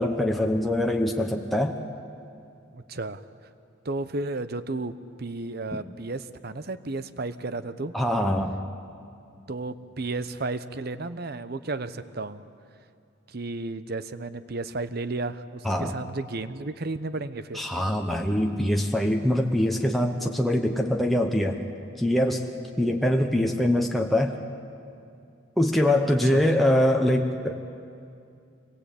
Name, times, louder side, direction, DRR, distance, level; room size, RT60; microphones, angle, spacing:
voice 1, 0.0-1.8 7.9-8.6 15.6-15.9 17.5-21.6 22.0-22.5 22.8-24.4 25.6-27.6, left 1 dB, ahead, 1 dB, 1.0 m, -23 dB
voice 2, 2.7-3.2 3.8-4.9 5.2-8.0 9.5-12.4 13.3-17.6 26.0-26.7, right 2 dB, 50° right, 12 dB, 0.9 m, -33 dB
26.0 x 21.0 x 8.5 m, 2.5 s
head